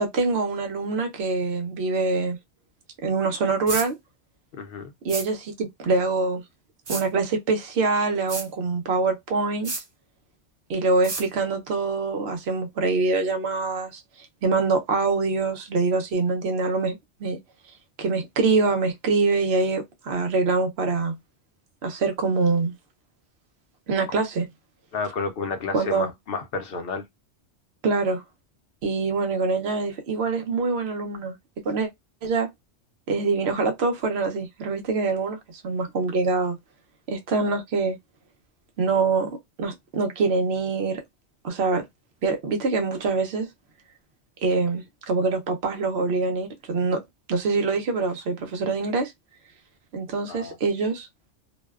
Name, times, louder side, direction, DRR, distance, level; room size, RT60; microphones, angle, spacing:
voice 1, 0.0-2.4 3.0-4.0 5.0-6.4 6.9-9.7 10.7-14.0 14.4-17.4 18.0-21.1 21.8-22.7 23.9-24.5 25.7-26.1 27.8-28.2 28.8-31.3 31.6-31.9 32.2-32.5 33.1-36.6 37.1-38.0 38.8-39.3 39.6-41.0 41.4-41.8 42.2-43.5 44.4-47.0 47.3-49.1 49.9-51.1, right 3 dB, 65° right, 0.9 m, -24 dB
sound 1, 3.7-3.9 5.1-5.3 6.9-7.0 8.3-8.5 9.6-9.8 11.0-11.2, right 3 dB, 40° right, 0.9 m, -30 dB
voice 2, 4.5-4.9 24.9-27.0 50.3-50.6, left 4 dB, 60° left, 0.7 m, -31 dB
2.5 x 2.1 x 2.3 m
omnidirectional pair, 1.2 m